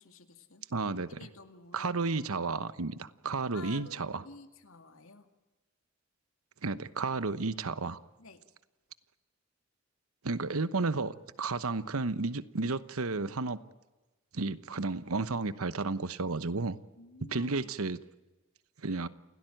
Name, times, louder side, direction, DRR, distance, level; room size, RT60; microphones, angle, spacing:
voice 1, 0.0-0.7 0.9-2.0 3.5-5.3 8.2-8.4 17.0-17.7, left 3 dB, 75° left, 7 dB, 2.4 m, -52 dB
voice 2, 0.7-1.2 1.7-4.2 6.6-8.0 10.2-13.6 14.3-16.8 17.3-18.0 18.8-19.1, right 3 dB, 85° right, 14 dB, 1.0 m, -32 dB
28.5 x 17.5 x 9.1 m, 1.1 s
head